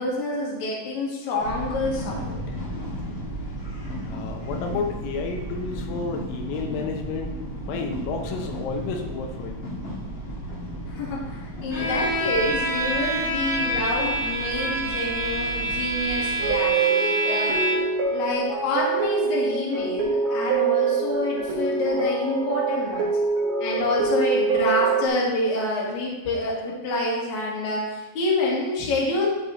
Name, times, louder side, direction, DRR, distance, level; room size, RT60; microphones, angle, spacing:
voice 1, 0.0-2.4 10.9-17.6 18.1-23.1 23.6-29.3, left 2 dB, 50° left, -5 dB, 2.5 m, -27 dB
sound 1, 1.4-16.7, right 1 dB, 70° left, 1.1 m, -35 dB
voice 2, 4.0-9.6 11.6-11.7, left 4 dB, 90° left, 3 dB, 3.4 m, -31 dB
Bowed string instrument, 11.7-18.0, right 1 dB, 25° left, 1.9 m, -26 dB
sound 2, 16.4-25.1, right 5 dB, 70° right, 2.0 m, -25 dB
10.0 x 7.4 x 2.9 m, 1.1 s
omnidirectional pair, 6.0 m